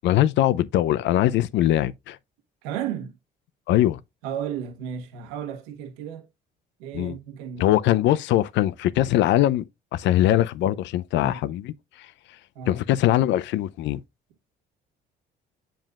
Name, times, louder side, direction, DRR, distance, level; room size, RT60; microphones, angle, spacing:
voice 1, 0.0-2.2 3.7-4.0 6.9-7.2 7.6-9.6 9.9-11.7 12.7-14.0, left 13 dB, 70° left, 0.6 m, -21 dB
voice 2, 2.6-3.1 4.2-6.2 6.8-7.7 11.2-11.4 12.5-12.8, right 9 dB, 90° right, 1.4 m, -33 dB
7.7 x 7.1 x 2.4 m
supercardioid pair, 75°, 20 cm